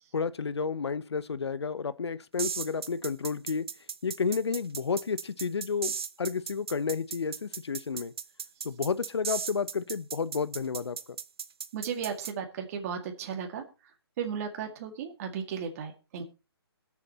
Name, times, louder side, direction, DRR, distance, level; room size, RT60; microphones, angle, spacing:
voice 1, 0.1-3.7 4.0-5.9 6.2-8.1 8.6-11.0, left 5 dB, 80° left, 0.8 m, -31 dB
sound 1, 2.4-12.3, right 7 dB, 65° right, 0.9 m, -36 dB
voice 2, 11.7-13.6 14.2-16.2, right 7 dB, 35° right, 2.0 m, -35 dB
22.0 x 7.4 x 2.9 m
hypercardioid pair, 150°, 14 cm